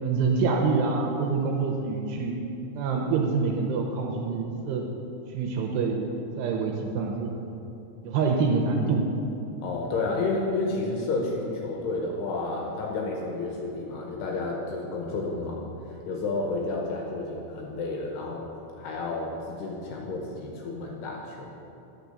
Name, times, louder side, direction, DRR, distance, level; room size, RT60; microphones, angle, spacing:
voice 1, 0.0-2.3 2.7-4.8 5.3-6.0 6.4-7.3 8.0-9.0, right 4 dB, 80° right, 1 dB, 2.6 m, -26 dB
voice 2, 9.6-21.5, left 3 dB, 75° left, -1 dB, 2.7 m, -31 dB
10.0 x 6.0 x 6.6 m, 2.8 s
omnidirectional pair, 5.4 m